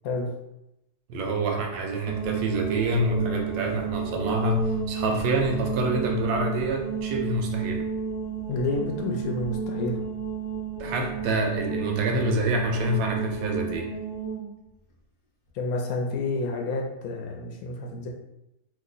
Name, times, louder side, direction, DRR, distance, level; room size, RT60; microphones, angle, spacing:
voice 1, 1.1-7.8 10.8-13.9, right 2 dB, 80° right, 2 dB, 1.1 m, -27 dB
sound 1, 2.1-14.4, right 6 dB, 45° left, 0.8 m, -32 dB
voice 2, 8.5-10.0 15.5-18.1, left 3 dB, 70° left, 1 dB, 0.9 m, -29 dB
3.0 x 2.1 x 3.8 m, 0.90 s
omnidirectional pair, 1.7 m